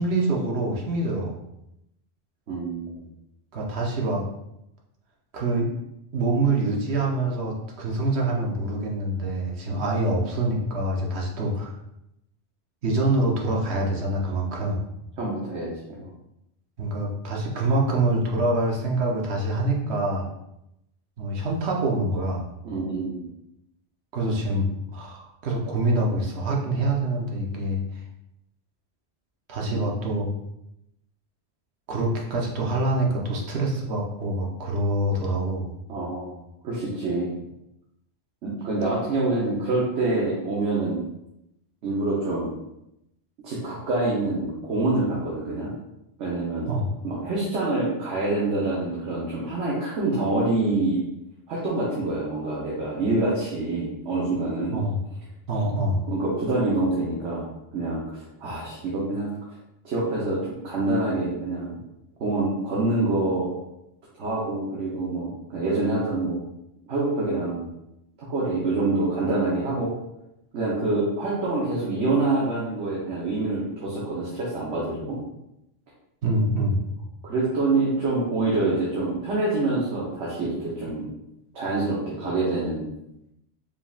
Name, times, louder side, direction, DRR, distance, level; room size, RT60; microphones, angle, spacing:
voice 1, 0.0-1.4 3.5-4.2 5.3-5.7 6.1-11.7 12.8-14.8 16.8-20.3 21.2-22.5 24.1-27.8 29.5-30.3 31.9-35.7 46.7-46.9 54.7-55.0 55.5-56.1 76.2-76.8, right 2 dB, 70° right, -1 dB, 1.0 m, -25 dB
voice 2, 2.5-3.0 15.2-15.7 16.0-16.1 22.6-23.2 29.6-29.8 35.9-37.3 38.4-41.0 41.8-42.5 43.4-45.7 46.2-46.7 47.0-51.0 51.5-54.8 56.1-57.4 57.7-59.3 59.8-60.4 60.6-61.8 62.2-63.5 64.2-66.4 66.9-67.7 68.2-69.9 70.5-75.2 77.2-81.1 81.5-82.9, right 2 dB, 90° right, -6 dB, 1.3 m, -26 dB
4.9 x 3.4 x 2.4 m, 0.85 s
omnidirectional pair, 1.2 m